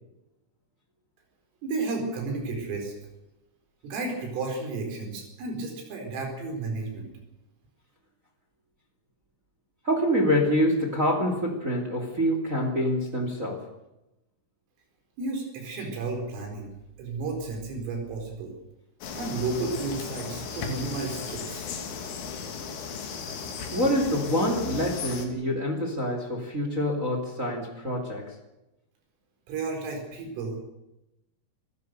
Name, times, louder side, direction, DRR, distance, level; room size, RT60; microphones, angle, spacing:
voice 1, 1.6-2.9 3.8-7.1 15.2-16.7 17.0-18.5 19.1-21.7 29.5-30.6, right 3 dB, 85° right, 2 dB, 7.2 m, -32 dB
voice 2, 9.8-13.6 23.7-28.3, equal, 20° right, 3 dB, 2.2 m, -26 dB
sound 1, 19.0-25.3, left 5 dB, 75° left, 4.9 m, -36 dB
27.5 x 16.0 x 6.8 m, 0.93 s
omnidirectional pair, 5.7 m